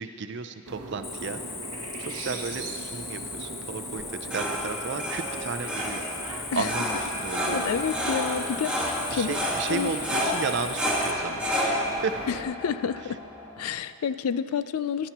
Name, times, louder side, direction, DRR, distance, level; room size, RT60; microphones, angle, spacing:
voice 1, 0.0-1.4 2.0-6.0 6.5-7.7 9.1-12.1 13.0-13.1, right 5 dB, 50° right, 9 dB, 0.5 m, -33 dB
sound 1, 0.7-12.4, right 2 dB, 90° right, 0.8 m, -40 dB
Cricket, 1.0-11.1, left 4 dB, 10° left, 0.3 m, -38 dB
sound 2, 4.0-13.7, equal, 5° right, 1.6 m, -31 dB
voice 2, 7.5-9.3 9.7-9.9 12.5-13.2 13.6-15.1, left 7 dB, 90° left, 14 dB, 0.4 m, -29 dB
16.0 x 11.0 x 3.0 m, 2.5 s
head